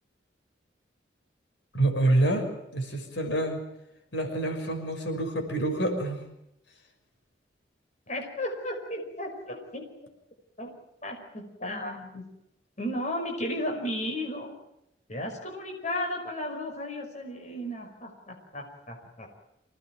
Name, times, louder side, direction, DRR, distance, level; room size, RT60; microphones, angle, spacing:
voice 1, 1.7-2.5 2.7-3.6 4.1-6.2, right 1 dB, 80° left, 4 dB, 6.0 m, -27 dB
voice 2, 8.1-9.9 10.6-10.7 11.0-12.2 12.8-14.5 15.1-19.3, left 1 dB, 40° left, 2 dB, 5.5 m, -34 dB
25.5 x 19.0 x 9.2 m, 0.83 s
head